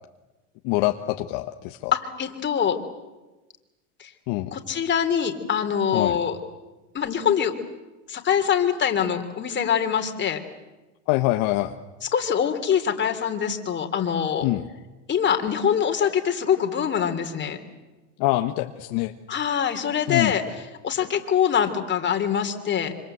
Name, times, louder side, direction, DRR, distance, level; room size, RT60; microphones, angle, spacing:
voice 1, 0.6-1.9 4.3-4.5 5.9-6.2 11.1-11.7 14.4-14.7 18.2-19.1 20.1-20.3, left 17 dB, 55° left, 6 dB, 1.4 m, -24 dB
voice 2, 1.9-2.8 4.0-4.1 4.5-6.4 6.9-7.5 8.1-10.4 12.1-14.5 15.1-17.6 19.3-20.4 20.8-22.9, left 8 dB, 30° left, 6 dB, 3.2 m, -24 dB
26.0 x 26.0 x 8.0 m, 1.1 s
supercardioid pair, 120°, 39 cm